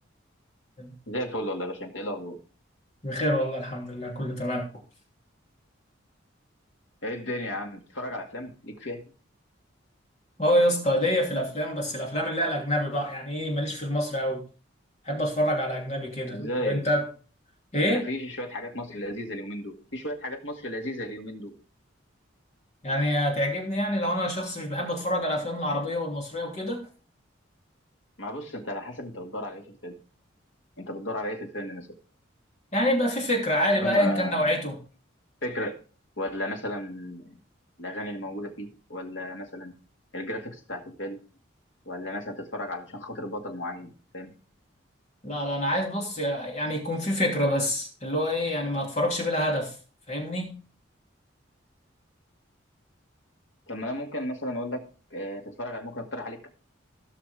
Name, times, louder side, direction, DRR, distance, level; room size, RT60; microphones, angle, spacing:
voice 1, 1.1-2.4 7.0-9.0 16.3-16.9 17.9-21.5 28.2-30.0 30.8-31.9 33.7-34.4 35.4-35.8 36.2-37.4 37.8-39.7 40.1-41.2 41.9-44.3 53.7-56.5, left 1 dB, 70° left, 2 dB, 2.1 m, -34 dB
voice 2, 3.0-4.7 10.4-14.4 15.0-17.0 17.7-18.0 22.8-26.8 32.7-34.8 45.2-49.7 50.1-50.5, equal, 35° left, -1 dB, 2.8 m, -26 dB
17.0 x 6.0 x 3.5 m, 0.37 s
head